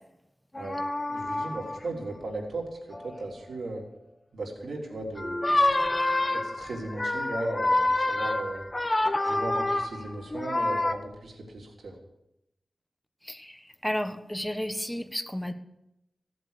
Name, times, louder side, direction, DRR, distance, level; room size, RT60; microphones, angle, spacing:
sound 1, 0.5-1.8 2.9-3.2 5.2-10.9, left 2 dB, 30° left, 1.0 m, -27 dB
voice 1, 1.1-2.7 3.0-3.8 4.3-5.6 6.3-8.7 9.2-11.9, right 2 dB, 90° right, -1 dB, 3.5 m, -36 dB
voice 2, 13.2-15.5, equal, 5° left, 8 dB, 1.3 m, -32 dB
16.0 x 7.8 x 6.7 m, 0.85 s
wide cardioid pair, 80°, 0 cm